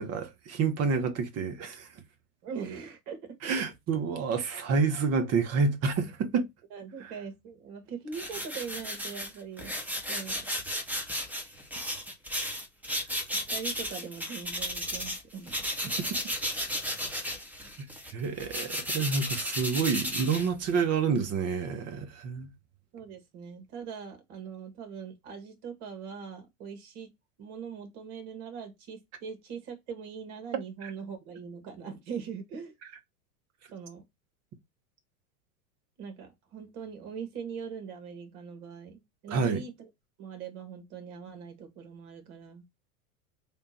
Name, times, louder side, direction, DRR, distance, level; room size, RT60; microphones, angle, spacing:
voice 1, 0.0-1.9 3.4-6.5 7.0-7.1 18.1-22.5 30.8-30.9 39.3-39.6, right 5 dB, 35° right, 1.1 m, -28 dB
voice 2, 2.4-3.6 6.7-9.8 10.1-10.5 13.3-15.9 22.9-27.1 27.4-32.8 33.7-34.0 36.0-39.7 40.2-42.6, right 6 dB, 55° right, 1.8 m, -41 dB
sound 1, 8.1-15.2 15.5-20.9, equal, 5° right, 1.0 m, -34 dB
3.5 x 2.5 x 4.2 m
hypercardioid pair, 100°, 43 cm